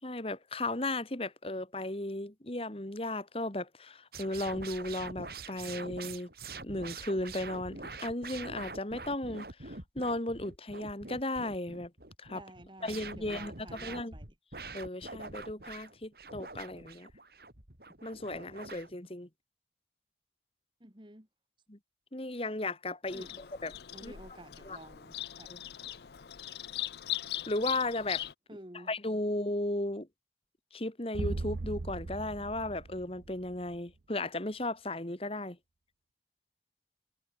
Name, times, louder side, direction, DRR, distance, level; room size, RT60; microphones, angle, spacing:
voice 1, 0.0-6.3 6.6-11.9 12.2-12.4 12.8-13.5 13.8-14.1 14.7-17.1 18.0-19.3 21.7-21.8 22.1-23.2 23.6-23.7 24.0-24.1 24.7-24.8 25.5-25.6 27.5-28.2 28.9-30.1 30.7-35.6, left 2 dB, 35° left, 1.9 m, -35 dB
sound 1, 4.1-18.9, right 4 dB, 60° right, 4.3 m, -45 dB
voice 2, 12.3-14.3 20.8-21.3 23.1-23.4 23.9-25.5 28.5-28.9, right 1 dB, 25° right, 3.9 m, -51 dB
Bird vocalization bird call bird song, 23.1-28.3, left 13 dB, 70° left, 0.6 m, -40 dB
sound 2, 31.1-33.8, right 2 dB, 75° right, 0.7 m, -38 dB
head